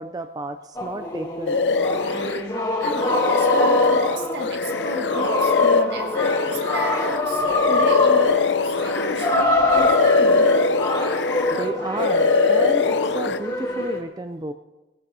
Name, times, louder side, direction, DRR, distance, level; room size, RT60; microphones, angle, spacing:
voice 1, 0.0-1.6 1.9-2.3 11.5-14.5, right 2 dB, 20° right, 8 dB, 0.4 m, -32 dB
sound 1, 0.8-14.0, left 2 dB, 25° left, 1.9 m, -25 dB
sound 2, 1.5-2.4 2.8-9.4 9.7-11.7 12.0-13.4, left 4 dB, 90° left, 0.6 m, -21 dB
voice 2, 2.8-10.5, right 2 dB, 75° right, 2 dB, 1.8 m, -33 dB
20.0 x 15.0 x 2.8 m, 1.1 s
head